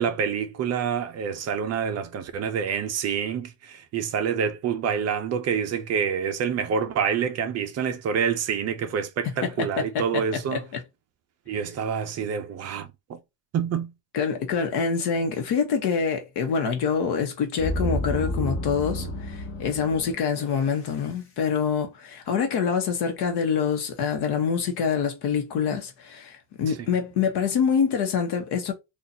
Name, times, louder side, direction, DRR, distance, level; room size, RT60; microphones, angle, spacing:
voice 1, 0.0-10.6 11.5-13.2 13.5-13.9 26.7-26.9, right 7 dB, 35° right, 0.5 m, -27 dB
voice 2, 9.4-10.2 10.5-10.6 14.1-28.7, left 6 dB, 55° left, 1.0 m, -26 dB
sound 1, 17.6-20.8, equal, 25° left, 0.9 m, -31 dB
4.0 x 2.4 x 2.7 m
cardioid pair, 160°, 49 cm